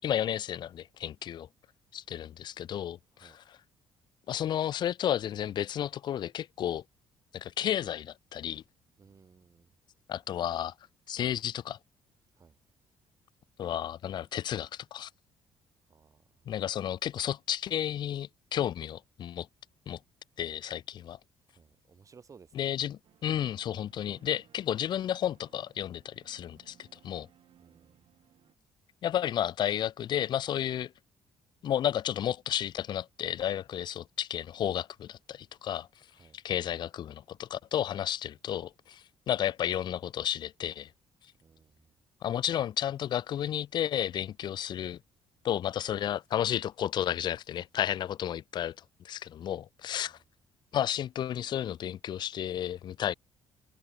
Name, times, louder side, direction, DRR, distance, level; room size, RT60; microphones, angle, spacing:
voice 1, 0.0-1.5 1.9-3.6 4.3-6.8 7.3-8.6 10.1-10.7 11.1-11.8 13.6-15.1 16.5-19.5 19.9-20.0 20.4-21.2 22.5-27.3 29.0-30.9 31.6-36.1 36.3-40.9 42.2-45.0 45.4-50.2 50.7-53.1, left 10 dB, 50° left, 0.4 m, -32 dB
voice 2, 9.0-9.7 12.4-12.6 15.9-16.2 21.5-22.9 27.6-28.1 36.2-36.4 41.4-41.9 50.0-50.1, right 5 dB, 35° right, 4.1 m, -59 dB
sound 1, 23.0-28.5, right 11 dB, 65° right, 5.0 m, -63 dB
cardioid pair, 120°, 10 cm